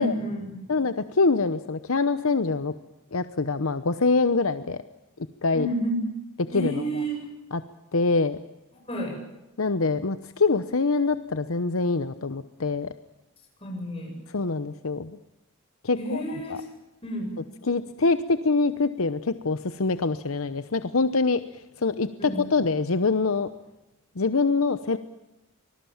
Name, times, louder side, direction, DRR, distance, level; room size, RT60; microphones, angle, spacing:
voice 1, 0.0-0.8 5.5-6.0 6.5-7.2 8.9-9.2 13.6-14.2 16.0-16.7 17.0-17.3 22.2-22.4, equal, 25° left, 1 dB, 7.9 m, -30 dB
voice 2, 0.7-2.7 3.1-4.8 5.4-5.7 6.5-6.8 7.5-7.6 7.9-8.4 9.6-12.9 14.3-15.1 15.8-16.2 16.5-16.6 17.6-21.4 21.8-23.5 24.2-25.0, left 3 dB, 70° left, 12 dB, 0.9 m, -24 dB
25.5 x 20.0 x 7.2 m, 0.97 s
head